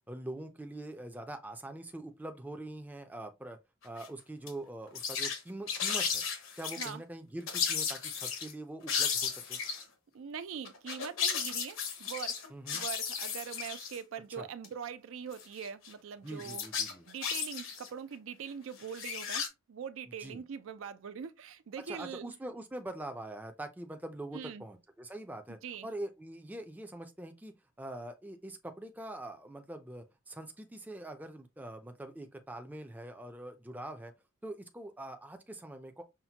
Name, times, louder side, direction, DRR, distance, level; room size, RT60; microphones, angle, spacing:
voice 1, 0.1-3.6 3.8-6.2 6.6-9.6 12.5-12.8 14.3-14.5 16.2-17.0 20.1-20.4 21.9-27.5 27.8-34.1 34.4-36.0, right 1 dB, 10° right, 0.4 m, -44 dB
sound 1, 3.8-4.1 4.5-4.6 4.9-5.4 5.7-6.9 7.5-8.5 8.9-9.8 10.6-14.0 14.6-14.7 15.3-15.9 16.4-17.9 18.8-19.5, left 6 dB, 80° left, 0.9 m, -34 dB
voice 2, 10.1-12.5 12.7-22.4 24.3-24.6 25.5-25.9, right 7 dB, 80° right, 0.4 m, -43 dB
5.7 x 2.1 x 2.8 m
head